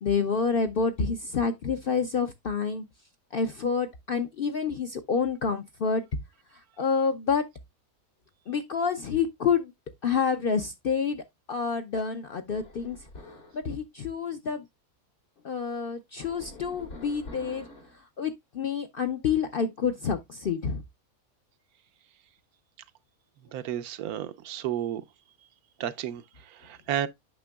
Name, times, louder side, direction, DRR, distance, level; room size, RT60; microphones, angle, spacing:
voice 1, 0.0-2.8 3.3-6.0 6.8-7.4 8.5-9.7 10.0-13.0 13.5-14.6 15.4-17.7 18.2-20.8, left 5 dB, 60° left, 0.6 m, -28 dB
sound 1, 12.6-13.6 16.2-18.0, left 2 dB, 80° left, 2.9 m, -46 dB
voice 2, 23.5-25.0 25.8-27.1, right 11 dB, 80° right, 1.2 m, -32 dB
8.8 x 5.9 x 2.2 m
omnidirectional pair, 1.5 m